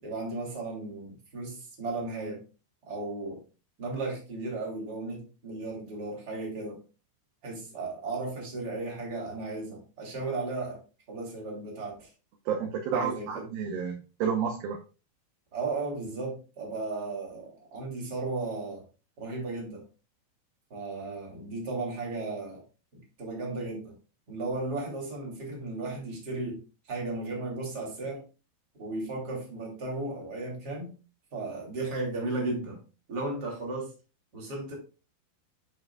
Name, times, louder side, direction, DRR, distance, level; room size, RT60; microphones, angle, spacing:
voice 1, 0.0-2.4 2.9-3.4 3.8-6.8 7.4-10.8 11.1-12.1 12.9-13.4 15.5-18.8 19.2-19.8 20.7-22.6 22.9-23.9 24.3-28.2 28.8-31.0 31.3-32.8 33.1-33.9 34.3-34.7, right 2 dB, 25° right, -2 dB, 2.7 m, -35 dB
voice 2, 12.5-14.8, right 7 dB, 75° right, 4 dB, 2.2 m, -30 dB
12.0 x 5.2 x 2.3 m, 0.33 s
omnidirectional pair, 5.1 m